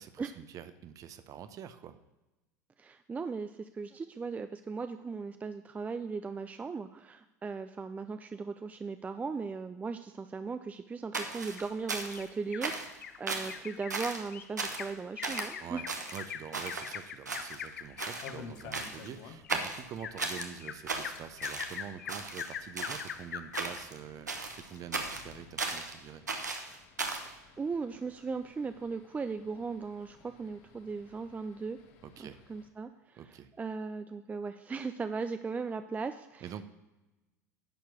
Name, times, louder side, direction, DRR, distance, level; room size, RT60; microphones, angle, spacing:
voice 1, 0.0-2.0 15.6-15.9 16.1-26.2 32.0-32.4 33.2-33.5 36.4-36.6, right 9 dB, 40° right, 11 dB, 0.7 m, -46 dB
voice 2, 2.8-15.8 27.2-31.8 32.2-36.5, right 4 dB, 15° right, 9 dB, 0.4 m, -38 dB
sound 1, 11.1-12.3 12.6-13.0 13.3-13.6 13.9-14.3 14.6-14.9 15.2-15.5 15.9-17.0 17.3-17.7 18.0-18.3 18.7-19.1 19.5-20.5 20.9-21.8 22.1-23.1 23.5-24.0 24.3-25.9 26.3-27.3, right 3 dB, 90° right, 0.9 m, -36 dB
Bird vocalization bird call bird song, 11.6-12.7 13.0-13.2 13.5-23.8 24.3-24.4 24.8-24.9, left 8 dB, 80° left, 0.5 m, -43 dB
sound 2, 17.8-19.7 20.0-20.1 20.4-20.5 21.0-32.7, left 6 dB, 55° left, 1.1 m, -54 dB
10.5 x 4.6 x 6.1 m, 1.0 s
figure-of-eight pair, 80°, 9 cm